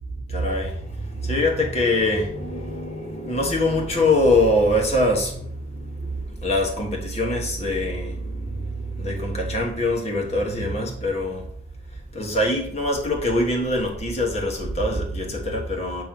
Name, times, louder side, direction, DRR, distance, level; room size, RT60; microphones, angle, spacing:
voice 1, 0.3-11.5 11.9-16.0, left 1 dB, 30° left, 1.4 m, -24 dB
7.5 x 3.0 x 5.9 m
head